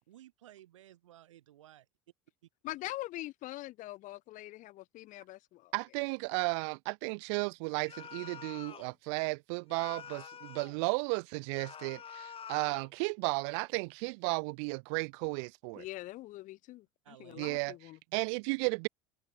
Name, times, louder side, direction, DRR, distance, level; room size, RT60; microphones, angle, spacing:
voice 1, 0.1-1.9 17.0-17.4, right 13 dB, 85° right, 2.1 m, -56 dB
voice 2, 2.6-5.7 15.8-18.0, left 17 dB, 55° left, 1.2 m, -43 dB
voice 3, 5.7-15.8 17.4-18.9, right 34 dB, 65° right, 0.6 m, -34 dB
sound 1, 7.9-8.9 9.7-10.8 11.5-12.9, left 8 dB, 35° left, 3.3 m, -47 dB
open air
hypercardioid pair, 75°, 16 cm